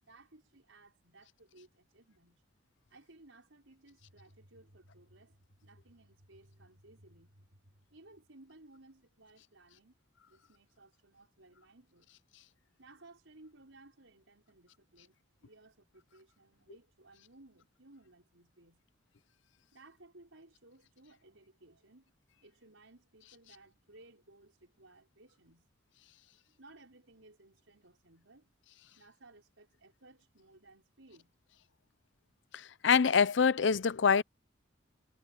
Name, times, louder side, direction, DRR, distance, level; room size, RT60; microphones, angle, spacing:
voice 1, 0.0-2.4 2.9-10.0 10.3-12.1 12.8-18.8 19.7-25.7 26.5-28.5 29.0-31.3, right 2 dB, 85° right, 5.4 m, -60 dB
voice 2, 32.5-34.2, left 6 dB, 70° left, 0.5 m, -25 dB
head